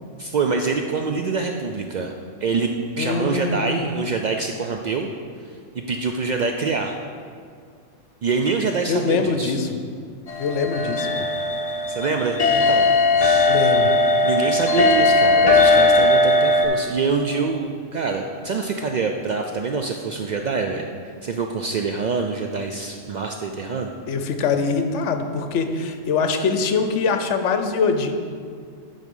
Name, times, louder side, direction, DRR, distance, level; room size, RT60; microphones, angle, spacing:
voice 1, 0.2-2.7 3.0-5.1 5.9-7.0 8.2-9.6 11.9-12.9 13.2-13.5 14.2-20.9 21.2-23.9, right 4 dB, 85° right, 3 dB, 0.4 m, -25 dB
voice 2, 3.0-3.9 8.9-9.8 10.4-11.3 13.4-14.0 24.1-28.1, left 4 dB, 70° left, 7 dB, 1.0 m, -23 dB
sound 1, 10.3-16.7, left 2 dB, 35° left, 0.7 m, -18 dB
11.0 x 3.9 x 5.4 m, 2.1 s
omnidirectional pair, 1.3 m